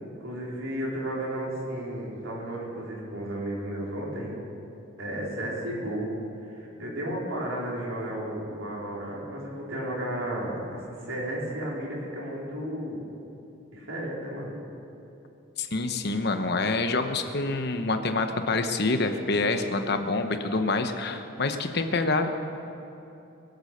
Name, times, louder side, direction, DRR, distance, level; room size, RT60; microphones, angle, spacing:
voice 1, 0.2-4.4 5.0-6.1 6.4-13.0 13.7-14.5, right 1 dB, 80° right, -4 dB, 4.0 m, -33 dB
voice 2, 15.6-22.3, left 3 dB, 50° left, 7 dB, 1.0 m, -26 dB
23.0 x 8.0 x 6.6 m, 2.9 s
head